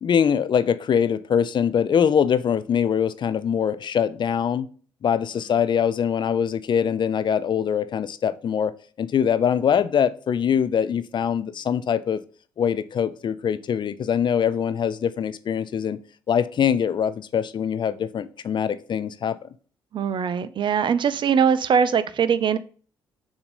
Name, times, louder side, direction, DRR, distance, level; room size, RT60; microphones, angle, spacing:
voice 1, 0.0-4.7 5.0-8.7 9.0-12.2 12.6-16.0 16.3-19.5, left 8 dB, 40° left, 0.5 m, -23 dB
voice 2, 19.9-22.6, right 7 dB, 40° right, 0.5 m, -21 dB
6.7 x 2.7 x 5.2 m
figure-of-eight pair, 45°, 12 cm